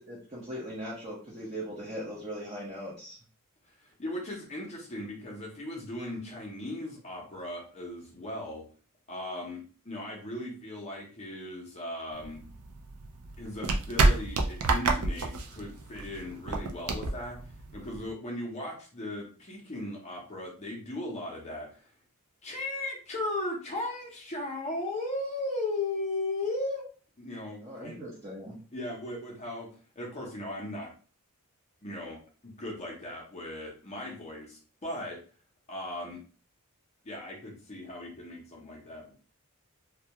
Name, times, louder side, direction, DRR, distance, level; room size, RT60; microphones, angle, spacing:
voice 1, 0.0-3.2 27.6-28.6, equal, 30° right, -7 dB, 0.8 m, -39 dB
voice 2, 3.8-8.6 9.1-12.4 13.4-17.4 17.7-21.9 22.4-26.8 27.2-28.0 28.7-29.7 30.0-30.9 31.8-35.2 35.7-36.2 37.0-39.1, left 1 dB, 30° left, -1 dB, 0.6 m, -37 dB
sound 1, 12.2-18.1, right 3 dB, 75° right, 0.4 m, -29 dB
2.2 x 2.1 x 2.8 m, 0.40 s
head